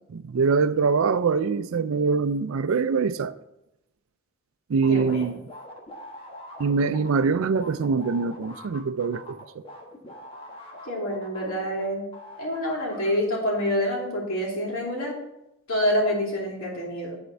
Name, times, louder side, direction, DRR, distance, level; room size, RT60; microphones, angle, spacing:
voice 1, 0.1-3.3 4.7-5.4 6.6-9.7, right 5 dB, 70° right, 0.4 m, -24 dB
sound 1, 4.8-11.9 12.1-13.1, left 1 dB, 25° left, 1.3 m, -43 dB
voice 2, 4.9-5.3 10.9-12.0 12.4-15.2 15.7-17.2, equal, 75° left, 2.8 m, -27 dB
9.4 x 4.4 x 4.5 m
head